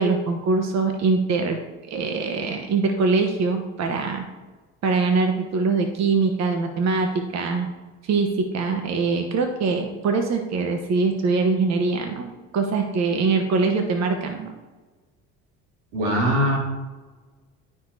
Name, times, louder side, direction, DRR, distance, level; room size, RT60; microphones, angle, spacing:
voice 1, 0.0-1.6 1.9-4.2 4.8-7.7 8.0-14.5, right 4 dB, 50° right, 4 dB, 1.1 m, -23 dB
voice 2, 15.9-16.6, equal, 90° right, -2 dB, 2.4 m, -21 dB
14.5 x 4.8 x 2.8 m, 1.3 s
hypercardioid pair, 70°, 34 cm